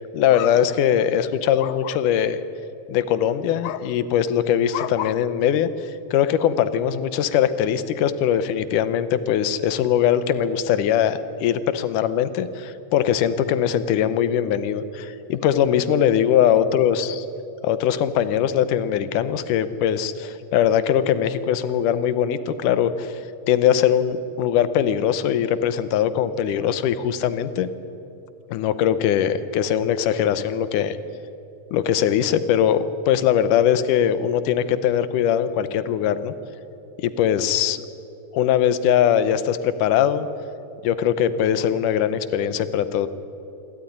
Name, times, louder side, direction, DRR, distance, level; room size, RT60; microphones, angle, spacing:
voice 1, 0.1-2.4 2.9-5.7 6.1-17.2 17.6-23.2 23.5-27.7 28.5-31.0 31.7-36.3 37.0-37.8 38.3-40.3 40.8-43.1, left 9 dB, 90° left, 13 dB, 2.5 m, -21 dB
26.5 x 13.0 x 9.9 m, 2.8 s
omnidirectional pair, 3.6 m